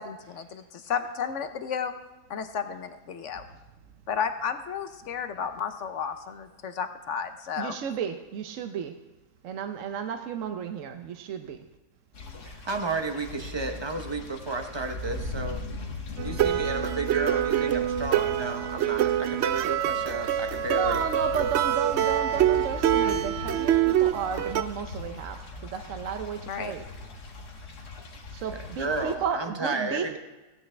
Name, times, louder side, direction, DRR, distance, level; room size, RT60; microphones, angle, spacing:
voice 1, 0.0-1.9 2.3-3.4 4.1-7.8 26.5-26.7, left 7 dB, 60° left, 9 dB, 0.9 m, -32 dB
voice 2, 7.6-8.9 9.4-11.6 20.7-26.8 28.3-30.2, right 7 dB, 60° right, 6 dB, 1.0 m, -33 dB
sound 1, 12.1-29.2, left 2 dB, 75° left, 1.9 m, -39 dB
voice 3, 12.4-15.6 16.2-21.0 28.7-30.2, right 3 dB, 30° right, 5 dB, 0.5 m, -32 dB
sound 2, 16.2-24.6, right 11 dB, 85° right, 0.5 m, -25 dB
16.0 x 10.0 x 3.3 m, 1.1 s
omnidirectional pair, 1.7 m